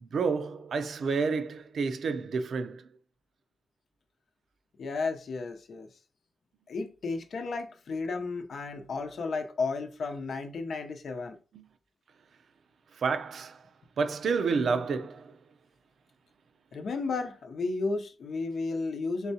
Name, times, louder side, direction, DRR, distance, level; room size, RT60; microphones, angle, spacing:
voice 1, 0.0-2.8 11.5-11.7 13.0-13.6 14.0-15.3, right 5 dB, 75° right, 0.5 m, -29 dB
voice 2, 4.8-5.9 6.7-11.4 16.7-19.3, left 3 dB, 70° left, 0.7 m, -33 dB
4.0 x 3.3 x 2.8 m
wide cardioid pair, 125°, 0 cm